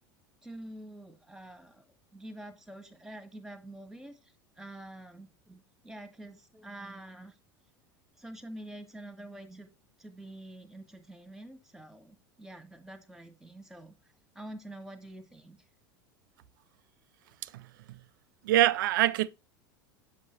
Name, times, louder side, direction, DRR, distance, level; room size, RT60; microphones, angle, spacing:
voice 1, 0.4-7.4 8.2-9.7 10.0-15.7, right 1 dB, 5° right, 1.4 m, -47 dB
voice 2, 17.4-18.0 18.4-19.3, right 14 dB, 70° right, 0.5 m, -26 dB
7.6 x 5.4 x 3.1 m
hypercardioid pair, 85°, 11 cm